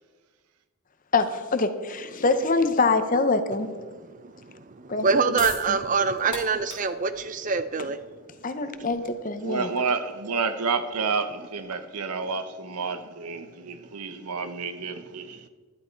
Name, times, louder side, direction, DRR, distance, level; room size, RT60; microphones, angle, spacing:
voice 1, 1.1-3.7 4.9-5.1 5.7-5.8 8.4-9.7, left 3 dB, 35° left, 0.8 m, -24 dB
voice 2, 3.9-8.0, right 5 dB, 35° right, 0.5 m, -25 dB
sound 1, 4.9-11.7, left 5 dB, 20° left, 2.3 m, -43 dB
voice 3, 9.4-15.5, right 4 dB, 85° right, 0.9 m, -30 dB
11.5 x 11.0 x 4.5 m
head